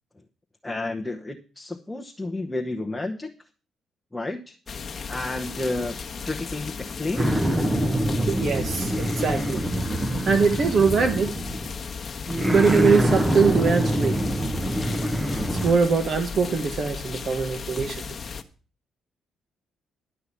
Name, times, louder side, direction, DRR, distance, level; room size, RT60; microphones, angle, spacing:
voice 1, 0.6-3.3 4.1-4.6 5.1-6.0 6.2-7.4, left 2 dB, 10° left, 1.0 m, -31 dB
sound 1, 4.7-18.4, left 5 dB, 40° left, 1.2 m, -36 dB
sound 2, 7.2-11.8 12.3-15.7, right 1 dB, 15° right, 1.0 m, -25 dB
voice 2, 8.3-9.6 10.2-11.4 12.5-14.2 15.6-18.0, right 5 dB, 55° right, 1.5 m, -22 dB
11.5 x 5.7 x 8.2 m
cardioid pair, 90°, 0 cm